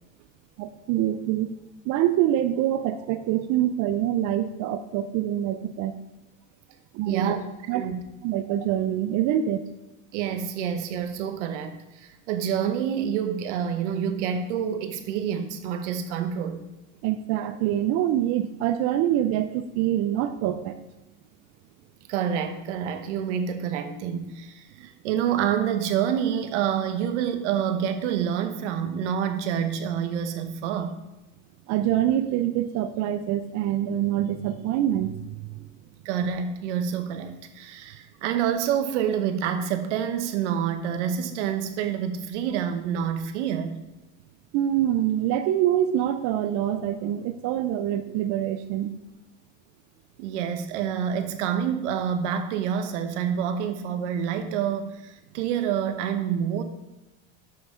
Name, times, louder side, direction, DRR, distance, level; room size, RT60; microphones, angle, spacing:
voice 1, 0.6-1.5 1.9-5.9 6.9-7.3 7.7-7.9 8.2-9.6 17.0-20.8 31.7-35.7 44.5-48.9, right 12 dB, 55° right, 9 dB, 0.5 m, -25 dB
voice 2, 7.0-7.4 7.7-8.0 10.1-16.6 22.1-31.0 36.0-43.8 50.2-56.6, right 8 dB, 85° right, 8 dB, 1.1 m, -27 dB
7.3 x 6.2 x 4.9 m, 0.98 s
supercardioid pair, 115°, 35 cm